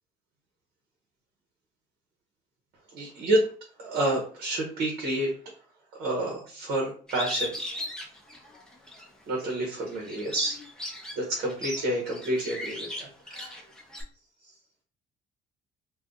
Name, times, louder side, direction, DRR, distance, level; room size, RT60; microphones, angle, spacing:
voice 1, 2.9-3.4 3.8-5.3 6.0-7.5 9.3-10.6 11.2-13.6, right 1 dB, 70° right, -1 dB, 1.1 m, -29 dB
Bird, 7.1-9.1 9.5-14.0, left 1 dB, 5° left, 0.8 m, -37 dB
2.5 x 2.4 x 3.7 m, 0.42 s
cardioid pair, 110°, 17 cm